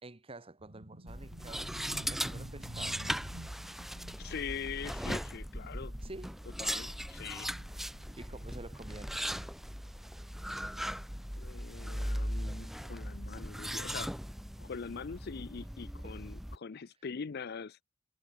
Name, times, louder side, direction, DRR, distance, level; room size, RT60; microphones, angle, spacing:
voice 1, 0.0-3.0 6.0-6.4 8.2-9.2 14.6-14.7 16.0-16.2, right 2 dB, 30° right, 1.3 m, -49 dB
sound 1, 0.6-10.6 10.8-11.1 11.9-12.9, right 1 dB, 60° right, 2.7 m, -51 dB
sound 2, 1.1-16.6, equal, ahead, 0.8 m, -39 dB
voice 2, 4.2-5.9 6.6-7.5 11.4-14.1 14.6-17.8, left 6 dB, 50° left, 0.5 m, -43 dB
head